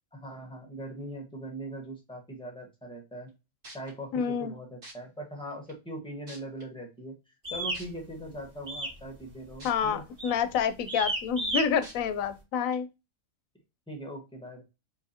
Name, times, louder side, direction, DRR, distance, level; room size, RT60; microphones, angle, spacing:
voice 1, 0.1-3.3 3.7-10.0 13.9-14.6, right 1 dB, 5° left, 1.2 m, -41 dB
sound 1, 3.3-3.4 3.6-3.9 4.8-4.9 5.7-5.8 6.3-6.6 7.7-7.8 9.6-9.7 10.2-10.3 11.8-11.9 12.7-12.8, right 1 dB, 55° right, 2.2 m, -46 dB
voice 2, 4.1-4.5 9.6-12.9, left 7 dB, 75° left, 1.0 m, -28 dB
sound 2, 7.4-7.8 8.7-9.0 9.3-9.6 10.2-10.4 10.9-11.7, right 2 dB, 40° right, 2.2 m, -31 dB
4.7 x 3.6 x 2.8 m
omnidirectional pair, 1.4 m